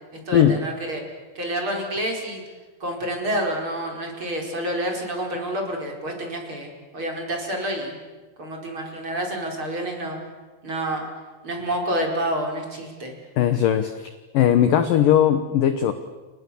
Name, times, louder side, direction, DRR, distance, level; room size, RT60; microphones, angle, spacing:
voice 1, 0.3-1.0 1.4-2.4 2.8-8.0 8.4-10.2 10.6-11.1 11.4-13.1, right 1 dB, 25° right, 1 dB, 5.1 m, -28 dB
voice 2, 13.4-14.1 14.3-15.9, left 10 dB, 70° left, 10 dB, 2.1 m, -18 dB
30.0 x 27.5 x 7.1 m, 1.3 s
omnidirectional pair, 5.4 m